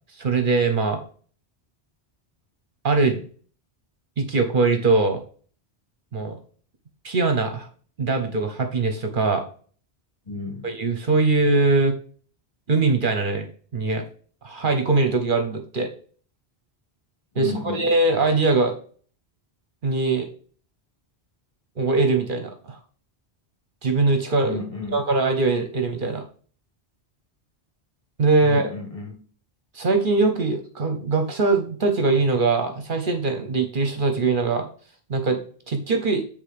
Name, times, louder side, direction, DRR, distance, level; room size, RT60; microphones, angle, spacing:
voice 1, 0.1-1.0 2.8-3.2 4.2-5.2 6.1-6.4 7.0-7.7 8.0-9.4 10.6-11.9 12.7-13.5 13.7-14.0 14.4-15.9 17.3-18.8 19.8-20.3 21.8-22.8 23.8-24.6 24.9-26.2 28.2-28.7 29.7-34.7 35.1-35.4 35.7-36.2, right 3 dB, 50° right, 1.0 m, -22 dB
voice 2, 10.3-10.6 17.4-17.8 24.4-24.9 28.4-29.1, left 4 dB, 30° left, 1.5 m, -32 dB
7.5 x 3.6 x 5.0 m
omnidirectional pair, 1.1 m